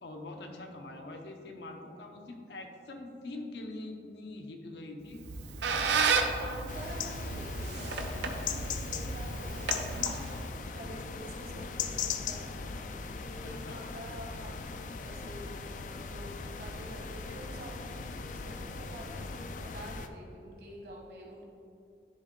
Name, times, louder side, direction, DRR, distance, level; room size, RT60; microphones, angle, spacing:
voice 1, 0.0-5.2 5.7-6.0 13.4-13.8, left 2 dB, 75° left, 3 dB, 0.8 m, -44 dB
Squeak, 5.1-10.6, right 4 dB, 80° right, 0.6 m, -33 dB
voice 2, 6.4-21.4, right 1 dB, 60° right, -2 dB, 1.4 m, -47 dB
sound 1, 6.7-20.1, left 5 dB, 45° left, 0.3 m, -39 dB
10.5 x 3.6 x 3.8 m, 2.6 s
head